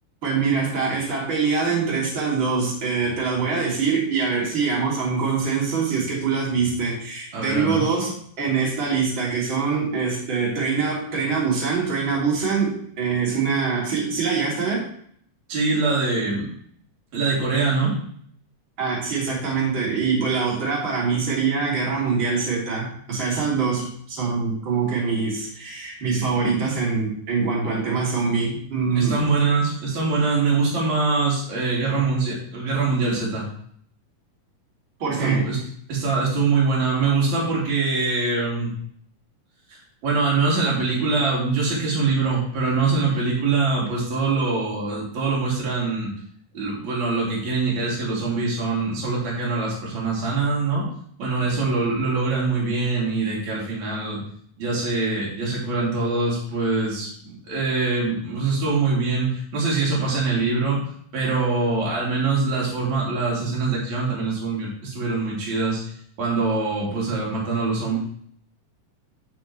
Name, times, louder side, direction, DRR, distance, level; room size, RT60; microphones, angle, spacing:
voice 1, 0.2-14.9 18.8-29.2 35.0-35.5, right 5 dB, 35° right, -5 dB, 3.5 m, -24 dB
voice 2, 7.3-7.8 15.5-16.5 17.1-17.9 29.0-33.4 35.2-35.6 35.9-38.7 39.7-46.1 46.5-50.9 51.2-54.2 54.6-60.9 61.1-65.9 66.2-68.0, right 3 dB, 60° right, -5 dB, 4.0 m, -23 dB
10.5 x 6.6 x 3.1 m, 0.62 s
omnidirectional pair, 3.8 m